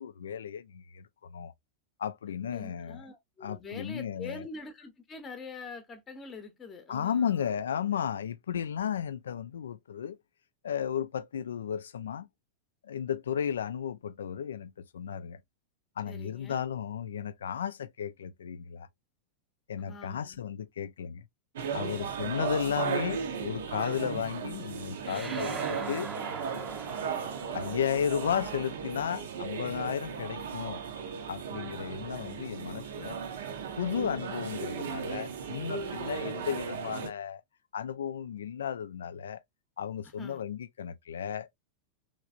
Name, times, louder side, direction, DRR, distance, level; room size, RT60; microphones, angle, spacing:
voice 1, 0.0-1.5 2.0-3.1 3.4-4.4 6.9-10.2 10.6-12.3 12.8-15.4 16.0-18.9 19.7-21.2 21.7-26.1 27.5-30.8 31.3-33.2 33.8-37.4 37.7-39.4 39.8-41.5, left 8 dB, 65° left, 0.3 m, -34 dB
voice 2, 2.5-7.6 16.1-16.6 19.8-20.4 21.6-22.3 26.8-27.9 35.8-36.2 40.0-40.4, left 3 dB, 20° left, 0.7 m, -46 dB
sound 1, 21.6-37.1, right 6 dB, 60° right, 0.5 m, -36 dB
sound 2, 25.0-29.8, right 4 dB, 15° right, 0.6 m, -43 dB
3.2 x 2.9 x 2.4 m
figure-of-eight pair, 90°, 0 cm